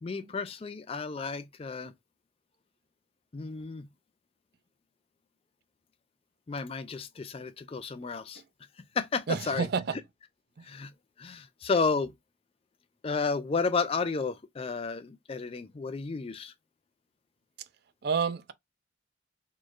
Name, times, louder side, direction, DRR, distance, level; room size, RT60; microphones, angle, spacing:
voice 1, 0.0-1.9 3.3-3.9 6.5-8.4 8.9-9.7 10.6-10.9 11.2-12.1 13.0-16.5, left 4 dB, 30° left, 0.3 m, -32 dB
voice 2, 9.3-9.9 10.6-10.7 18.0-18.5, right 5 dB, 50° right, 0.4 m, -29 dB
4.1 x 3.0 x 2.4 m
head